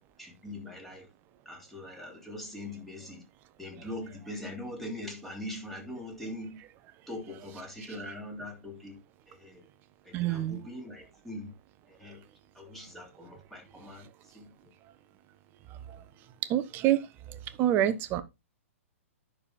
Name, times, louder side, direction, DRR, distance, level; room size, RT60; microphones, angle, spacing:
voice 1, 0.2-1.1 1.4-3.2 3.6-6.6 7.1-9.0 9.3-9.6 10.0-11.5 11.9-12.2 12.5-14.1 14.3-14.5, left 1 dB, 5° left, 3.0 m, -42 dB
voice 2, 10.1-10.6 16.5-17.0 17.6-18.2, right 12 dB, 25° right, 0.9 m, -26 dB
9.9 x 6.5 x 4.0 m
figure-of-eight pair, 115°, 7 cm